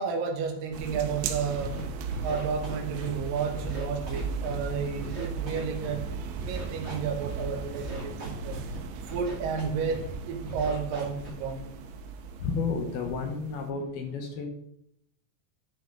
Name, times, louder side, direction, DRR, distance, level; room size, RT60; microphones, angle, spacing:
voice 1, 0.0-1.9 2.2-6.1 6.4-8.5 9.1-11.6, right 6 dB, 65° right, 1 dB, 2.4 m, -32 dB
sound 1, 0.7-13.7, right 5 dB, 85° right, 3.1 m, -37 dB
Scratching (performance technique), 1.5-1.8 2.1-3.2 3.5-4.6 5.0-6.1 6.4-7.4 7.7-8.8 9.1-9.6 9.9-10.2 10.4-11.3, right 2 dB, 25° right, 1.6 m, -39 dB
voice 2, 12.0-14.5, left 4 dB, 70° left, 4 dB, 2.8 m, -33 dB
10.5 x 6.1 x 3.9 m, 0.72 s
omnidirectional pair, 5.1 m